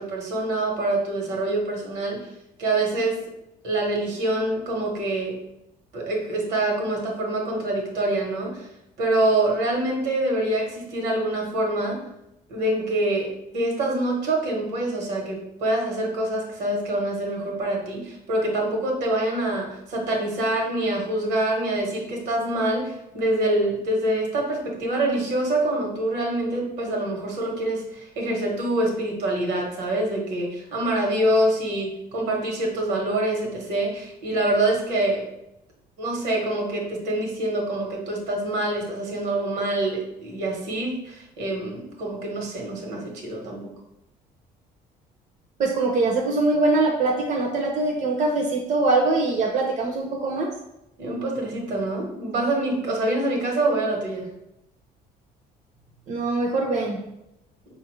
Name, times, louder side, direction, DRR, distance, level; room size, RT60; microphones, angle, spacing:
voice 1, 0.0-2.3 2.6-3.2 3.6-5.4 5.9-8.7 9.0-12.0 12.5-35.2 36.0-43.7 51.0-54.3, right 1 dB, 75° right, 0 dB, 1.1 m, -25 dB
voice 2, 45.6-50.5 56.1-57.0, right 3 dB, 45° right, 0 dB, 0.6 m, -23 dB
4.1 x 2.4 x 3.1 m, 0.87 s
cardioid pair, 110°, 17 cm